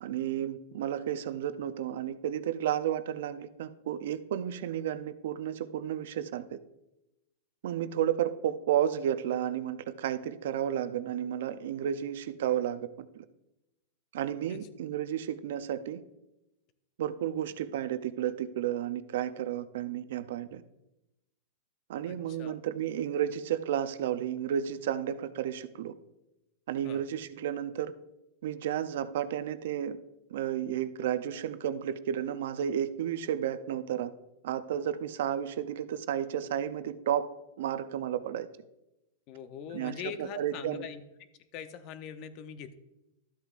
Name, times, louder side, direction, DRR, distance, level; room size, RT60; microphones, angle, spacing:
voice 1, 0.0-6.6 7.6-13.2 14.1-16.0 17.0-20.6 21.9-25.9 26.7-27.9 28.4-30.0 30.3-34.1 34.4-37.3 37.6-38.5 39.7-40.9, right 10 dB, 70° right, 13 dB, 0.5 m, -32 dB
voice 2, 22.1-22.6 26.8-27.0 39.3-41.0 41.5-42.7, left 8 dB, 45° left, 11 dB, 0.7 m, -42 dB
12.5 x 8.1 x 2.5 m, 0.92 s
supercardioid pair, 140°, 0 cm